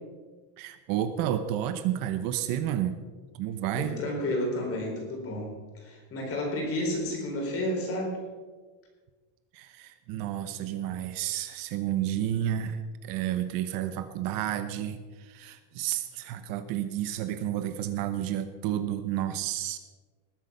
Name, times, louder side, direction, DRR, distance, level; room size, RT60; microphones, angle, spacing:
voice 1, 0.6-3.0 3.3-4.0 9.5-19.8, right 11 dB, 50° right, 10 dB, 0.9 m, -31 dB
voice 2, 3.7-8.2, left 1 dB, 30° left, 1 dB, 4.1 m, -31 dB
20.0 x 8.2 x 5.5 m, 1.4 s
cardioid pair, 170°, 43 cm